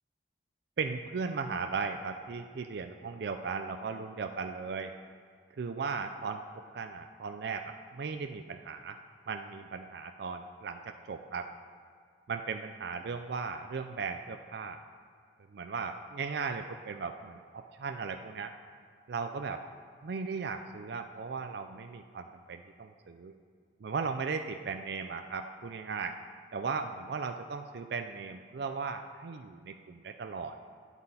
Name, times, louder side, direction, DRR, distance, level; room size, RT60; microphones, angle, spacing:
voice 1, 0.8-4.9 5.6-6.4 6.7-9.0 9.3-11.5 12.3-14.8 15.5-18.5 19.1-19.6 20.0-23.3 23.8-26.1 26.5-30.6, right 5 dB, 65° right, 6 dB, 0.4 m, -37 dB
11.5 x 8.8 x 4.2 m, 2.1 s
head